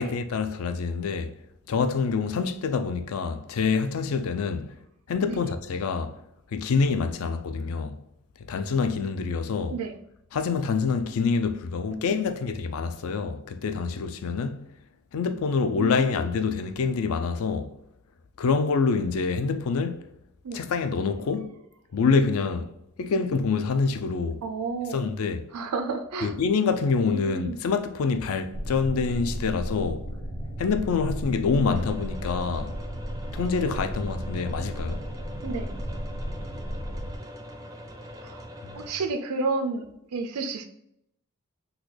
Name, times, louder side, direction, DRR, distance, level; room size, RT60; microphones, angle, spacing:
voice 1, 0.0-1.3 1.7-4.8 5.1-6.2 6.5-8.0 8.5-9.8 10.3-14.7 15.1-17.7 18.4-20.0 20.5-21.5 21.9-22.7 23.0-24.4 24.9-25.5 26.2-30.1 30.6-32.7 33.3-35.0 38.6-38.8, left 5 dB, 70° left, 0.4 m, -26 dB
voice 2, 11.9-12.3 15.8-16.4 20.4-20.6 24.4-25.0 25.5-26.3 27.1-27.6 35.4-35.7 38.2-38.4 38.7-40.6, right 3 dB, 85° right, 0.4 m, -31 dB
sound 1, 28.5-37.2, equal, 50° left, 1.4 m, -34 dB
sound 2, 31.7-38.9, equal, 15° right, 0.4 m, -43 dB
3.9 x 2.3 x 3.1 m
head